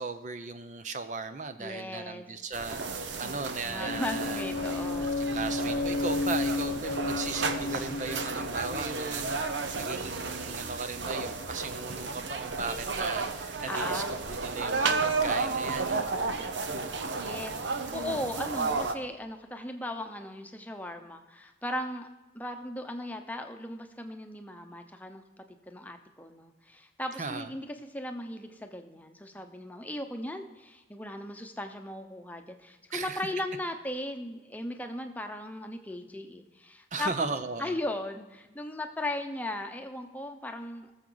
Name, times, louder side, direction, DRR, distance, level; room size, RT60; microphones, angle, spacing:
voice 1, 0.0-4.5 5.2-14.9 15.2-17.4 27.2-27.5 32.9-33.2 36.9-37.8, right 4 dB, 45° right, 9 dB, 0.6 m, -37 dB
voice 2, 1.6-2.2 3.7-5.2 13.7-14.1 17.2-22.1 22.3-25.2 25.7-37.1 37.6-40.9, left 1 dB, 10° left, 5 dB, 0.8 m, -37 dB
sound 1, 2.5-18.9, right 4 dB, 85° right, 0.8 m, -33 dB
sound 2, 3.2-13.4, left 1 dB, 45° left, 0.9 m, -51 dB
sound 3, 3.8-9.7, left 3 dB, 85° left, 0.8 m, -32 dB
18.5 x 7.2 x 3.9 m, 1.1 s
head